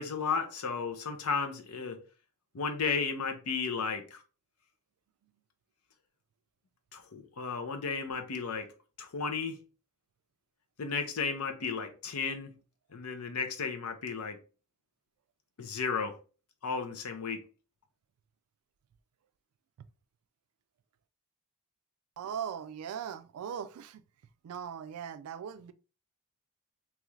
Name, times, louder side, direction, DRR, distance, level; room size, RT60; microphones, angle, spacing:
voice 1, 0.0-2.0 2.5-4.2 6.9-8.7 9.0-9.6 10.8-12.5 12.9-14.4 15.6-16.2 16.6-17.4, left 5 dB, 90° left, 0.6 m, -34 dB
voice 2, 22.2-24.0 24.4-25.7, right 8 dB, 75° right, 0.3 m, -39 dB
3.0 x 2.4 x 3.1 m
head